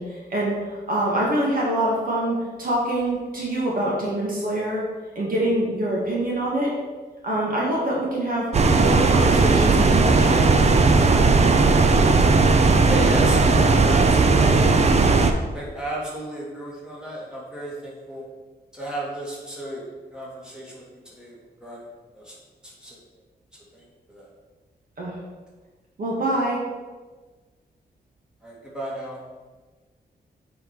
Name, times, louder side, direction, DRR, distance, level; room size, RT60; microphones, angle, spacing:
voice 1, 0.0-4.8 5.2-6.7 7.2-8.5 8.8-10.5 25.0-25.2 26.0-26.6, right 1 dB, 55° right, -4 dB, 2.0 m, -25 dB
sound 1, 8.5-15.3, right 3 dB, 40° right, 0.6 m, -17 dB
voice 2, 12.8-15.2 15.5-18.2 18.7-19.8 20.1-21.9 22.1-22.3 22.6-23.0 23.7-24.3 28.4-29.2, right 1 dB, 5° right, -5 dB, 2.3 m, -34 dB
7.8 x 5.1 x 4.6 m, 1.3 s
wide cardioid pair, 150°, 17 cm